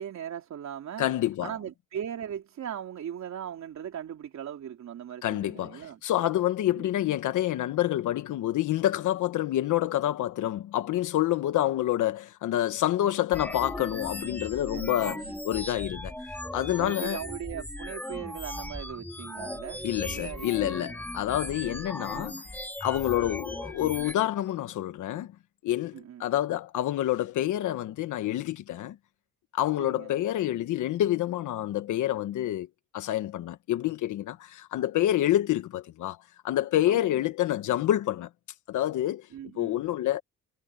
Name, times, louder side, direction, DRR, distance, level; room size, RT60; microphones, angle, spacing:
voice 1, 0.0-1.1 1.4-6.0 6.7-7.0 14.7-15.3 16.8-20.7 23.1-23.4 25.9-26.2 29.8-30.1 36.9-37.3 39.3-39.8, right 9 dB, 65° right, 3.5 m, -39 dB
voice 2, 1.0-1.5 5.2-16.1 16.5-17.2 19.8-22.4 22.8-25.3 25.6-25.9 26.2-29.0 29.5-32.7 32.9-36.2 36.4-38.3 38.7-39.3 39.6-40.2, left 13 dB, 80° left, 1.3 m, -27 dB
sound 1, 13.3-24.1, left 1 dB, 5° left, 3.4 m, -38 dB
cardioid pair, 90°, 30 cm